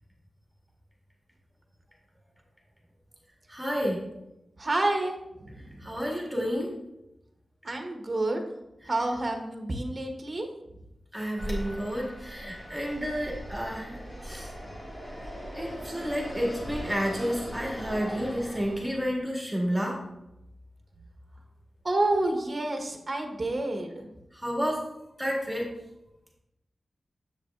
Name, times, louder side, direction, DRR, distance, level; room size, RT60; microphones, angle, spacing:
voice 1, 3.5-4.0 5.8-6.8 11.1-14.5 15.5-20.0 24.3-24.9 25.2-25.8, equal, 5° right, -2 dB, 1.9 m, -30 dB
voice 2, 4.6-5.6 7.6-8.4 8.9-10.5 21.8-24.1, right 2 dB, 35° right, 4 dB, 1.0 m, -29 dB
Fixed-wing aircraft airplane, 11.4-19.2, equal, 20° left, 2.0 m, -39 dB
7.6 x 6.8 x 2.4 m, 0.88 s
wide cardioid pair, 75°, 0 cm